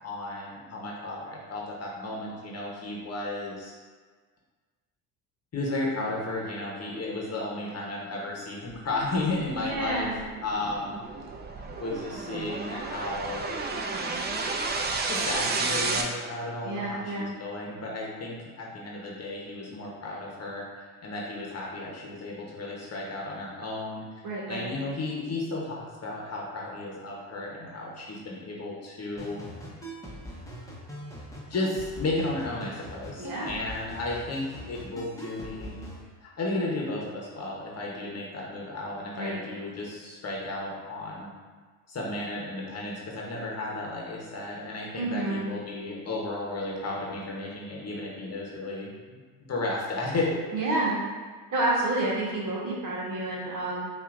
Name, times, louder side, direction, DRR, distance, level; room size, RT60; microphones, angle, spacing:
voice 1, 0.0-3.8 5.5-10.1 10.4-11.0 11.6-13.6 15.1-24.0 24.5-29.5 31.5-35.9 36.2-41.3 41.9-49.2 49.5-50.4, left 2 dB, 35° left, -3 dB, 1.1 m, -34 dB
sound 1, 9.1-16.0, right 3 dB, 25° right, 0.5 m, -32 dB
voice 2, 9.5-10.2 16.6-17.3 24.2-24.7 33.2-33.5 39.2-39.4 44.9-45.5 50.5-51.0 51.5-53.9, right 2 dB, 45° right, -4 dB, 1.4 m, -29 dB
sound 2, 29.2-36.0, equal, 5° left, 1.0 m, -42 dB
5.5 x 2.7 x 2.6 m, 1.5 s
hypercardioid pair, 70°, 43 cm